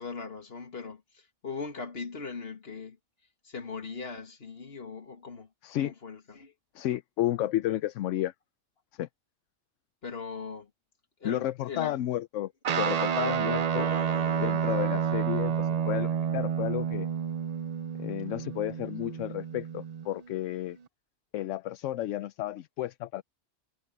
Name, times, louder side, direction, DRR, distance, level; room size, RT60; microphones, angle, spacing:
voice 1, 0.0-3.0 3.4-5.5 5.7-6.5 10.0-10.7 11.2-12.0 13.7-14.7, left 5 dB, 55° left, 2.1 m, -40 dB
voice 2, 5.6-5.9 6.7-8.3 8.9-9.1 11.2-13.9 14.4-17.1 17.9-20.8 21.3-23.2, left 13 dB, 80° left, 0.9 m, -32 dB
Guitar, 12.6-20.3, right 7 dB, 50° right, 0.5 m, -29 dB
omnidirectional pair, 1.3 m